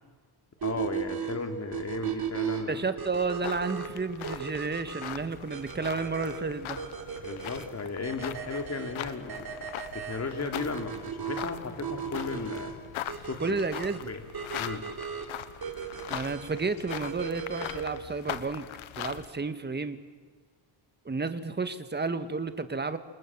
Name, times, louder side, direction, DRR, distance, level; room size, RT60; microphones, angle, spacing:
voice 1, 0.6-2.8 7.2-9.6 9.9-12.8 13.2-13.4 14.0-14.2 14.5-14.9, left 4 dB, 35° left, 5 dB, 3.6 m, -35 dB
sound 1, 0.6-18.0, right 8 dB, 50° right, 3.9 m, -37 dB
voice 2, 2.7-6.8 13.4-14.1 16.1-18.7 19.0-20.0 21.1-23.0, right 4 dB, 20° right, 10 dB, 1.9 m, -31 dB
sound 2, 3.1-19.3, left 12 dB, 80° left, 1.4 m, -41 dB
28.5 x 27.5 x 7.6 m, 1.5 s
cardioid pair, 110°, 47 cm